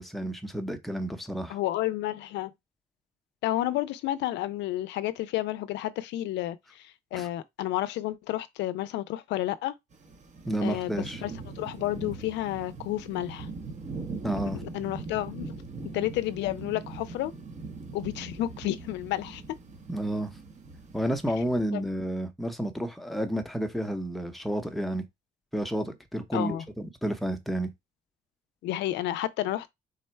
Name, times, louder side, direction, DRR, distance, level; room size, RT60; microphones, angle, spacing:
voice 1, 0.0-1.6 7.1-7.3 10.5-11.2 14.2-14.6 19.9-20.3 20.9-25.0 25.5-27.7, right 1 dB, ahead, 0.7 m, -31 dB
voice 2, 1.5-2.5 3.4-9.7 10.6-11.3 11.6-13.5 14.6-15.5 15.9-17.3 17.9-19.4 21.7-21.8 26.3-26.6 28.6-29.7, left 14 dB, 85° left, 0.4 m, -31 dB
sound 1, 9.9-21.6, right 3 dB, 40° right, 0.9 m, -41 dB
3.8 x 2.1 x 4.4 m
cardioid pair, 115°, 18 cm